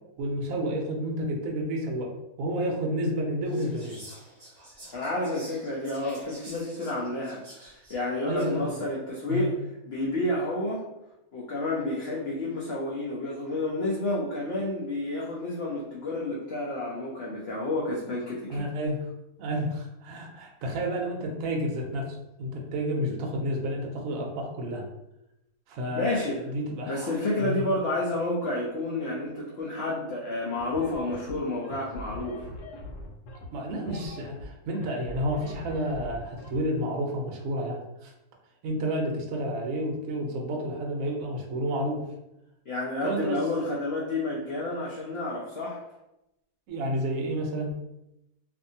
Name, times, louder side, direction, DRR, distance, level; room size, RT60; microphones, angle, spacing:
voice 1, 0.2-4.0 8.2-8.8 9.3-9.5 18.5-19.0 19.4-24.9 25.7-27.6 33.5-38.1 38.6-42.0 43.0-43.4 46.7-47.7, equal, 70° right, 1 dB, 0.9 m, -30 dB
Whispering, 3.4-8.6, right 1 dB, 35° right, 0.7 m, -49 dB
voice 2, 4.9-9.6 9.8-10.8 11.3-18.7 25.9-26.4 26.9-32.5 42.7-45.8, left 2 dB, 65° left, -5 dB, 0.6 m, -30 dB
sound 1, 30.6-36.6, left 1 dB, 90° left, 1.2 m, -42 dB
2.6 x 2.5 x 2.6 m, 0.89 s
omnidirectional pair, 1.6 m